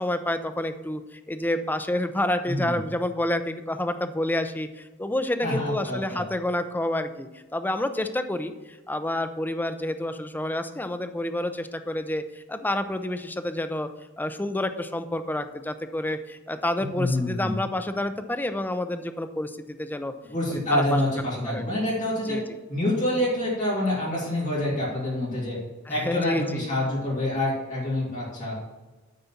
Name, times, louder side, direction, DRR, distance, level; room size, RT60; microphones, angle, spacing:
voice 1, 0.0-13.9 14.2-20.1 20.5-20.8 21.2-21.6 22.3-22.4 25.9-26.7, left 1 dB, 10° left, 8 dB, 0.5 m, -29 dB
voice 2, 2.5-2.8 5.4-6.2 16.8-17.5 20.3-22.4 22.7-25.6 25.9-28.5, left 1 dB, 35° left, -7 dB, 2.9 m, -27 dB
9.3 x 4.1 x 7.1 m, 1.2 s
head